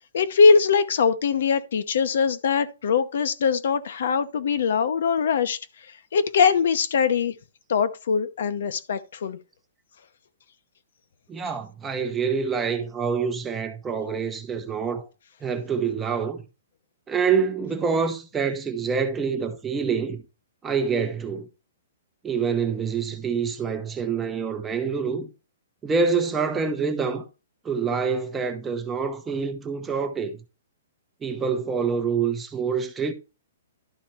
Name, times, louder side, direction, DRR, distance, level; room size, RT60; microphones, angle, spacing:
voice 1, 0.1-5.6 5.9-7.3 7.7-9.4, left 5 dB, 65° left, 0.8 m, -22 dB
voice 2, 11.3-15.0 15.4-16.4 17.1-20.2 20.6-21.5 22.2-25.3 25.8-27.2 27.6-30.4 31.2-33.1, right 5 dB, 10° right, 0.9 m, -26 dB
11.5 x 4.2 x 4.3 m
hypercardioid pair, 165°, 0 cm